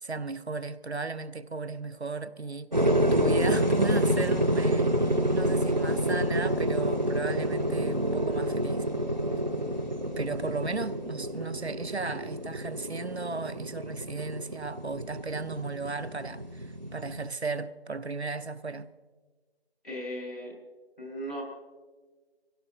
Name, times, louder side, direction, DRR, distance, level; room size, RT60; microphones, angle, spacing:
voice 1, 0.0-8.9 10.2-18.9, right 3 dB, 80° right, 0.9 m, -35 dB
sound 1, 2.7-17.2, right 1 dB, 45° right, 0.9 m, -28 dB
voice 2, 19.8-20.5 21.0-21.4, equal, 60° left, 5.3 m, -37 dB
22.5 x 17.0 x 2.8 m
figure-of-eight pair, 175°, 32 cm